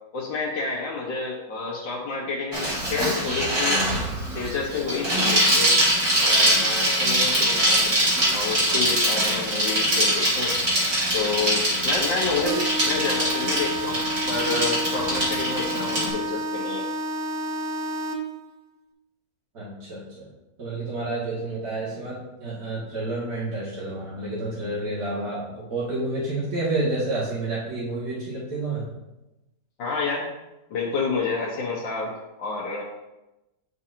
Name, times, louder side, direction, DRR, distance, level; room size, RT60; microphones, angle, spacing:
voice 1, 0.1-3.8 4.3-5.7 6.2-7.9 8.3-10.5 11.1-16.8 29.8-30.3 30.7-32.1 32.4-32.8, left 4 dB, 80° left, -4 dB, 1.7 m, -29 dB
Bicycle, 2.5-16.1, right 1 dB, 40° right, 2.5 m, -23 dB
sound 1, 12.5-18.5, right 1 dB, 80° right, 1.3 m, -30 dB
voice 2, 19.5-20.3 20.6-28.8, right 2 dB, 55° right, -9 dB, 2.6 m, -29 dB
11.0 x 3.9 x 2.8 m, 0.98 s
omnidirectional pair, 2.0 m